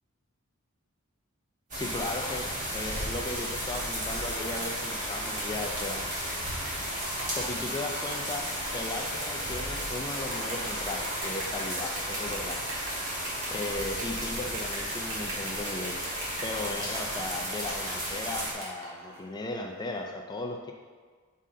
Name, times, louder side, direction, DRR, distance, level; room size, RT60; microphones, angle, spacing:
voice 1, 1.7-2.5 2.7-6.1 7.3-12.6 13.5-16.0 16.4-20.7, left 2 dB, 20° left, 2 dB, 0.4 m, -36 dB
sound 1, 1.7-18.5, equal, 40° right, 1.5 m, -34 dB
sound 2, 3.0-3.1 3.4-19.2, right 2 dB, 65° right, 1.6 m, -41 dB
6.4 x 4.1 x 3.7 m, 1.5 s
head